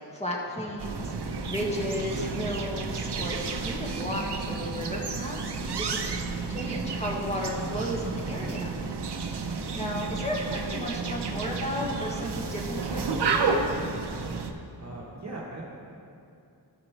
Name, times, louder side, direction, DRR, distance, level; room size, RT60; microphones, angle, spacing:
voice 1, 0.1-6.1 6.5-8.8 9.7-13.8, left 1 dB, 15° left, -3 dB, 1.5 m, -34 dB
sound 1, 0.8-14.5, right 4 dB, 70° right, 0.7 m, -31 dB
voice 2, 14.8-15.6, right 2 dB, 40° right, -4 dB, 1.1 m, -41 dB
14.0 x 5.1 x 4.4 m, 2.7 s
wide cardioid pair, 105°, 42 cm